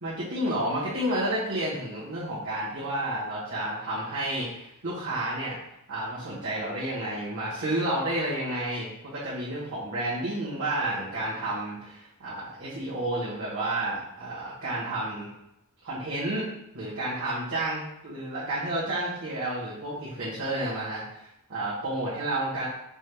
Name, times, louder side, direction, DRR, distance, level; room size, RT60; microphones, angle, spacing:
voice 1, 0.0-5.6 5.9-15.3 15.8-16.5 16.7-21.0 21.5-22.7, right 1 dB, 65° right, -10 dB, 1.4 m, -31 dB
5.3 x 3.3 x 2.3 m, 0.84 s
head